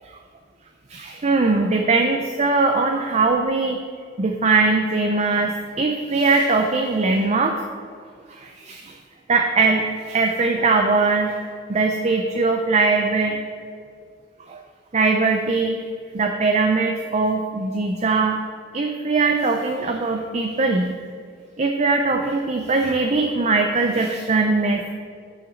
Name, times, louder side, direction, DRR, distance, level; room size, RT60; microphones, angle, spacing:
voice 1, 0.9-3.8 4.2-7.6 8.3-9.0 9.3-13.4 14.5-14.6 14.9-15.8 16.1-18.4 18.7-20.9 21.6-24.9, right 3 dB, 35° right, 3 dB, 0.5 m, -21 dB
6.4 x 5.8 x 7.2 m, 2.2 s
head